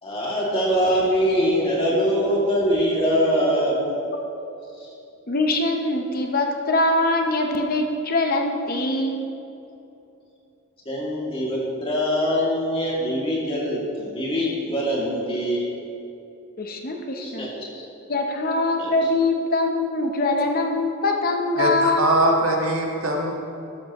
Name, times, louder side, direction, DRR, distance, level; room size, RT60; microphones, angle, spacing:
voice 1, 0.0-3.7 4.8-4.9 10.9-15.7 17.2-17.9 18.8-18.9, equal, 25° left, -5 dB, 2.4 m, -23 dB
voice 2, 5.3-9.2 16.6-17.5 18.1-22.4, left 2 dB, 45° left, 3 dB, 0.8 m, -23 dB
voice 3, 21.6-23.3, right 1 dB, 85° right, 0 dB, 1.6 m, -22 dB
13.0 x 12.0 x 3.1 m, 2.8 s
head